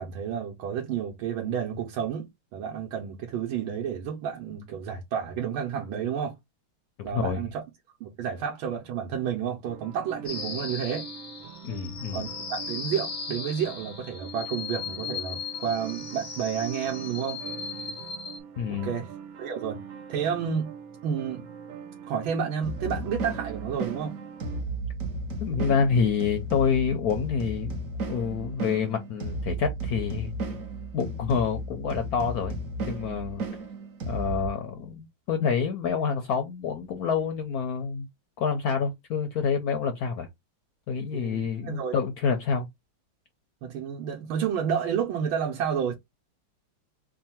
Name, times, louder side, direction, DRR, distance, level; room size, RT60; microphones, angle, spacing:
voice 1, 0.0-6.3 7.0-7.6 8.0-11.1 12.1-17.4 18.7-19.1 19.4-20.7 21.0-21.5 22.1-24.1 41.1-42.0 43.6-45.9, right 8 dB, 90° right, 1.6 m, -30 dB
voice 2, 7.0-7.4 11.6-12.2 18.6-19.0 25.4-27.7 28.1-30.3 30.9-33.4 34.1-38.1 38.4-40.3 40.9-42.7, left 6 dB, 70° left, 0.8 m, -27 dB
sound 1, 9.6-24.6, right 8 dB, 70° right, 1.5 m, -43 dB
sound 2, 10.3-18.4, left 5 dB, 50° left, 0.4 m, -37 dB
sound 3, 22.6-34.5, right 2 dB, 55° right, 1.0 m, -34 dB
3.7 x 2.2 x 4.2 m
omnidirectional pair, 2.3 m